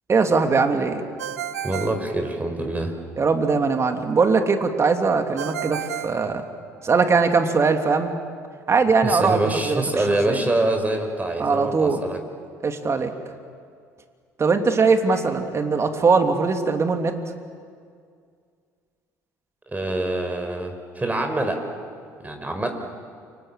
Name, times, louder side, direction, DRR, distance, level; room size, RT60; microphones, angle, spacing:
voice 1, 0.1-1.0 3.2-6.4 6.8-8.2 8.7-9.4 9.6-10.4 11.4-12.0 12.6-13.1 14.4-17.2, right 4 dB, 35° right, 6 dB, 3.1 m, -21 dB
Ringtone, 1.2-2.9 5.4-7.0, right 10 dB, 85° right, 0.9 m, -33 dB
voice 2, 1.6-2.9 9.0-12.2 19.7-21.6 22.2-22.7, right 2 dB, 20° right, 5 dB, 5.4 m, -25 dB
29.0 x 25.5 x 7.7 m, 2.2 s
hypercardioid pair, 60°, 8 cm